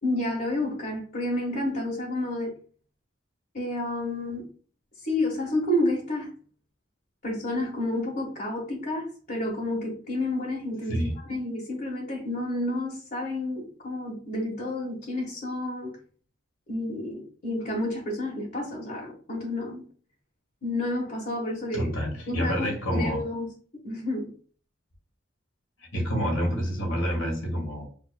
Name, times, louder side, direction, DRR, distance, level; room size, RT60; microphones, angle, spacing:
voice 1, 0.0-2.5 3.5-4.4 5.0-6.3 7.2-11.0 11.3-15.9 16.7-19.8 20.6-21.9 22.3-23.5 23.8-24.3, left 1 dB, 45° left, -5 dB, 1.4 m, -30 dB
voice 2, 10.9-11.2 21.7-23.3 25.8-27.9, equal, 80° left, 1 dB, 1.8 m, -28 dB
5.7 x 2.9 x 2.3 m, 0.43 s
head